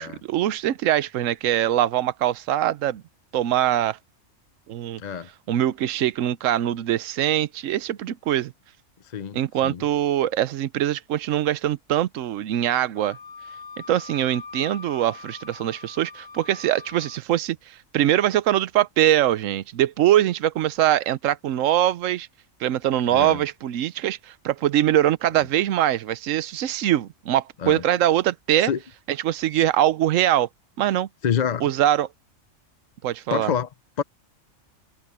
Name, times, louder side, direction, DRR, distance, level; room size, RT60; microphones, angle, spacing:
voice 1, 0.0-3.0 3.3-4.0 4.7-5.0 5.5-8.5 9.3-13.2 13.9-22.3 22.6-28.7 29.1-30.5 30.8-31.1 31.6-32.1 33.0-33.5, right 12 dB, 75° right, 1.1 m, -23 dB
voice 2, 5.0-5.3 9.0-9.8 23.1-23.4 27.6-27.8 28.6-28.8 29.5-29.6 31.2-31.7 33.3-33.7 34.0-34.1, left 7 dB, 45° left, 0.6 m, -27 dB
Wind instrument woodwind instrument, 12.9-17.2, left 4 dB, 65° left, 2.2 m, -42 dB
omnidirectional pair, 1.3 m